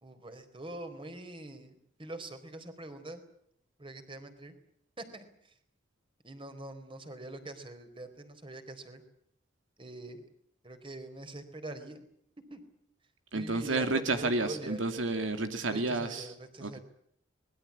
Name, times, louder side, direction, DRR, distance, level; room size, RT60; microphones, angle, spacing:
voice 1, 0.0-3.2 3.8-4.5 5.0-5.2 6.2-9.0 9.8-10.3 10.6-12.0 12.5-12.6 13.3-14.8 15.7-16.8, right 2 dB, 25° right, 8 dB, 4.1 m, -44 dB
voice 2, 13.3-16.3 16.6-16.8, right 2 dB, 80° right, 7 dB, 2.4 m, -31 dB
25.5 x 21.0 x 8.6 m, 0.69 s
head